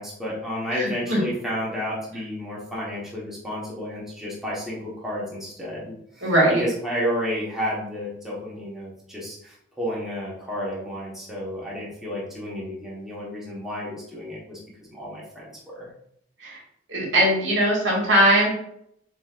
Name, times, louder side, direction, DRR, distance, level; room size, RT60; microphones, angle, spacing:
voice 1, 0.0-6.3 6.6-14.6 14.9-15.9, equal, ahead, -6 dB, 1.1 m, -31 dB
voice 2, 0.7-1.2 6.2-6.6 16.4-16.6 16.9-18.5, equal, 70° right, -4 dB, 1.8 m, -20 dB
7.6 x 2.7 x 2.4 m, 0.72 s
head